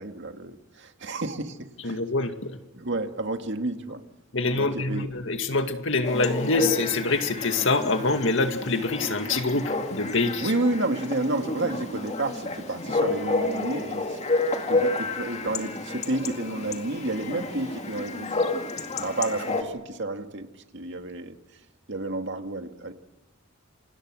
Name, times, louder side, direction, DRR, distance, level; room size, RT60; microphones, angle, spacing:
voice 1, 0.0-2.0 2.7-4.0 4.5-5.1 10.4-14.2 14.7-18.6 19.0-20.5 20.7-21.6 21.9-22.9, right 2 dB, 55° right, 6 dB, 2.1 m, -30 dB
voice 2, 1.8-2.6 4.3-10.5, left 3 dB, 65° left, 6 dB, 2.2 m, -25 dB
Chatter / Bark / Livestock farm animals working animals, 6.0-19.6, left 3 dB, 30° left, 2.2 m, -30 dB
28.5 x 25.5 x 6.4 m, 1.1 s
head